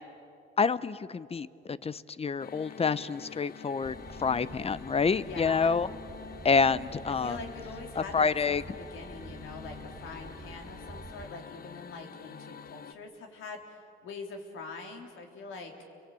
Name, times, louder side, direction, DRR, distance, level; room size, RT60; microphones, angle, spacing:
voice 1, 0.6-5.9 6.4-7.4 8.0-8.6, left 5 dB, 30° left, 17 dB, 0.7 m, -28 dB
sound 1, 2.4-12.9, left 7 dB, 50° left, 1.0 m, -47 dB
sound 2, 3.8-11.3, right 3 dB, 15° right, 1.1 m, -48 dB
voice 2, 5.2-5.8 7.2-15.7, left 3 dB, 80° left, 2 dB, 3.7 m, -44 dB
29.5 x 23.0 x 8.4 m, 2.6 s
cardioid pair, 90°, 20 cm